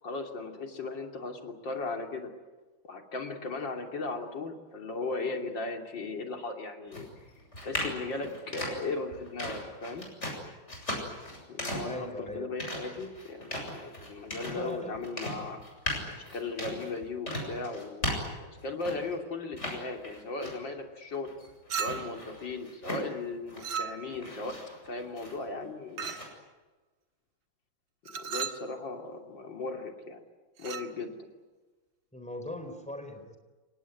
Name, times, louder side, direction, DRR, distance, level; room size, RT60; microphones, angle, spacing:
voice 1, 0.0-2.3 2.8-7.3 7.6-10.1 11.5-15.6 16.2-21.3 21.7-24.6 24.8-26.1 28.1-30.2 30.6-31.3, left 3 dB, 65° left, 4 dB, 3.6 m, -37 dB
sound 1, 6.9-19.2 19.5-20.8 21.1-23.8 24.1-25.6 26.0-26.2, left 1 dB, 35° left, 7.7 m, -38 dB
voice 2, 11.8-12.5 14.5-15.4 32.1-33.4, left 1 dB, 5° left, 6 dB, 4.2 m, -40 dB
Chink clink, 21.7-22.3 23.6-24.3 26.0-26.4 28.1-28.7 30.6-30.9, right 7 dB, 75° right, 2.1 m, -36 dB
29.5 x 18.0 x 9.8 m, 1.2 s
omnidirectional pair, 2.2 m